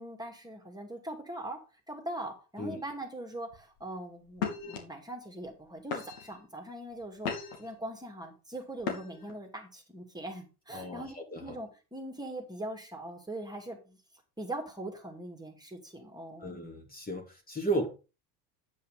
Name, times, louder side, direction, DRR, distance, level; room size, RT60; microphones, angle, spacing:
voice 1, 0.0-1.6 1.9-7.3 7.6-14.0 14.4-16.6, right 1 dB, 10° right, 3 dB, 2.6 m, -41 dB
sound 1, 3.5-3.8 4.4-4.8 5.5-5.6 5.9-6.4 6.9-7.7 8.8-9.3, left 6 dB, 65° left, 3.0 m, -36 dB
voice 2, 10.7-11.5 16.4-17.9, right 2 dB, 20° left, 2 dB, 2.4 m, -34 dB
9.4 x 5.5 x 5.1 m, 0.32 s
hypercardioid pair, 75°, 49 cm